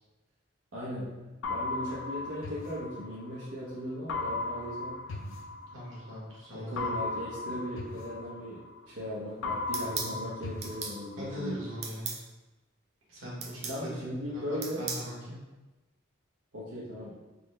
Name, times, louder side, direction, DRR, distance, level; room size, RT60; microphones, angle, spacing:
voice 1, 0.7-1.1 1.5-5.0 6.5-8.6 8.8-11.6 13.7-14.8 16.5-17.1, equal, 90° right, -9 dB, 0.8 m, -37 dB
sound 1, 1.4-3.5 4.1-6.2 6.8-9.0 9.4-11.5, left 3 dB, 80° left, 0.4 m, -37 dB
voice 2, 5.7-6.9 11.2-12.2 13.1-15.4, equal, 70° right, -6 dB, 1.2 m, -41 dB
sound 2, 9.7-10.2 10.6-11.0 11.8-12.2 13.4-13.8 14.6-15.1, right 5 dB, 30° right, 0.3 m, -36 dB
3.8 x 2.0 x 3.2 m, 1.1 s
head